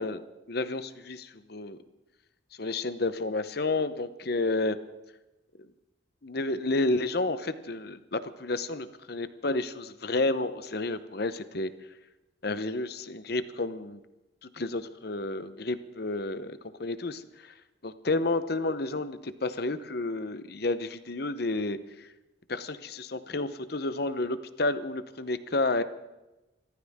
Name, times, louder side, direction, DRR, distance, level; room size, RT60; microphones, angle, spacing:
voice 1, 0.0-1.8 2.6-4.8 6.2-11.7 12.4-14.0 14.4-17.5 17.8-22.1 22.5-25.8, left 2 dB, 55° left, 12 dB, 0.9 m, -31 dB
27.5 x 14.0 x 3.7 m, 1.0 s
head